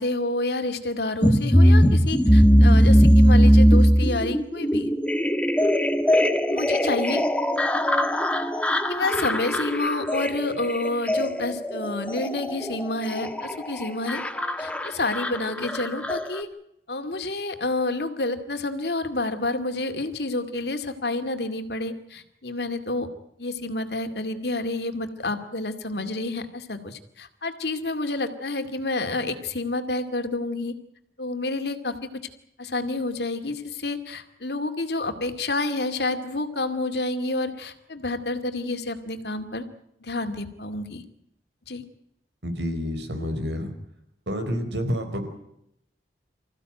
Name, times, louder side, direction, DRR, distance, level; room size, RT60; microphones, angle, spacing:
voice 1, 0.0-4.9 6.5-7.2 8.9-14.2 14.6-16.5 16.9-23.1 23.4-30.7 31.2-31.9 32.6-39.6 40.0-41.0 41.7-41.8, left 2 dB, 70° left, 7 dB, 2.3 m, -29 dB
sound 1, 1.2-16.4, equal, 5° left, 1.3 m, -20 dB
voice 2, 42.4-43.7 44.3-45.3, equal, 80° right, 7 dB, 4.4 m, -29 dB
26.0 x 15.5 x 9.0 m, 0.77 s
head